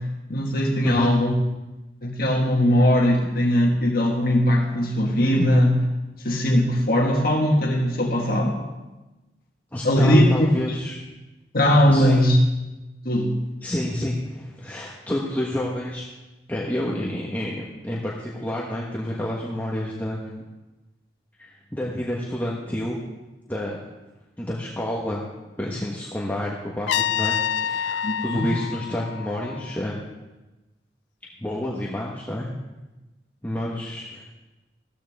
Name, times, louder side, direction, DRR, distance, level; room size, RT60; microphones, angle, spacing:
voice 1, 0.0-1.3 2.0-5.8 6.2-8.6 9.8-10.8 11.5-12.4 13.0-13.4 28.0-28.5, equal, 55° left, 0 dB, 1.7 m, -20 dB
voice 2, 9.7-11.0 11.9-12.3 13.6-16.0 16.5-20.4 21.4-23.0 23.5-23.8 24.4-25.2 25.6-27.3 27.6-30.0 31.4-32.5 33.4-34.3, left 1 dB, 10° left, -4 dB, 1.3 m, -29 dB
Trumpet, 26.9-29.8, left 9 dB, 80° left, 0.3 m, -27 dB
15.5 x 13.5 x 3.6 m, 1.1 s
head